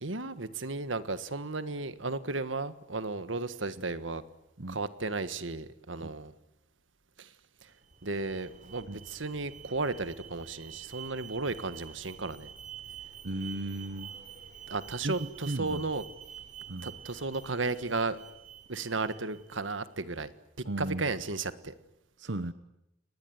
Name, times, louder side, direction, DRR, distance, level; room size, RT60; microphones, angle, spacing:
voice 1, 0.0-4.2 4.7-6.3 7.2-7.3 7.6-7.7 8.0-12.5 14.7-16.0 16.8-18.2 18.7-20.3 20.6-21.7, right 3 dB, 90° right, 13 dB, 1.6 m, -34 dB
Alarm, 7.7-19.7, right 8 dB, 40° right, 3.9 m, -48 dB
voice 2, 13.2-14.1 15.0-15.8 16.7-16.9 20.6-21.0 22.2-22.5, right 1 dB, 70° right, 13 dB, 1.0 m, -35 dB
29.5 x 20.5 x 9.6 m, 0.85 s
head